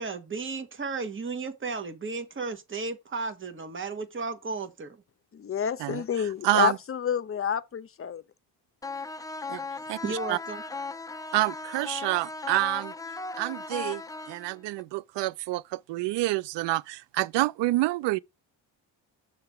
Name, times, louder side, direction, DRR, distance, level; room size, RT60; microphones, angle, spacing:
voice 1, 0.0-5.0 10.0-10.6, right 4 dB, 25° right, 1.3 m, -34 dB
voice 2, 5.3-8.2, left 8 dB, 30° left, 0.7 m, -29 dB
voice 3, 6.4-6.8 9.5-9.6 9.9-10.4 11.3-12.9 13.4-18.2, right 18 dB, 70° right, 0.5 m, -28 dB
sound 1, 8.8-14.8, left 3 dB, 10° left, 0.3 m, -37 dB
6.7 x 3.4 x 5.7 m
cardioid pair, 80°, 43 cm